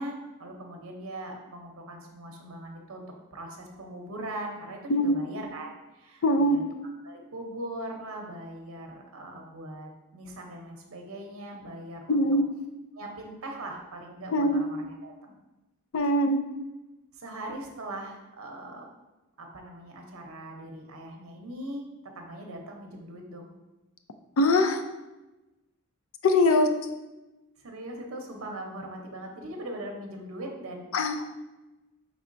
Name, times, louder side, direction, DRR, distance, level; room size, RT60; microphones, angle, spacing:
voice 1, 0.0-3.1 3.3-5.7 5.9-6.6 7.0-12.2 13.0-15.3 17.1-18.9 19.4-21.8 22.1-23.5 27.6-30.9, right 1 dB, 70° right, 2 dB, 0.7 m, -40 dB
voice 2, 6.2-6.6 12.1-12.4 14.3-14.6 15.9-16.4 24.4-24.8 26.2-26.7 30.9-31.2, left 1 dB, 65° left, 6 dB, 0.4 m, -22 dB
5.4 x 3.4 x 2.5 m, 1.0 s
head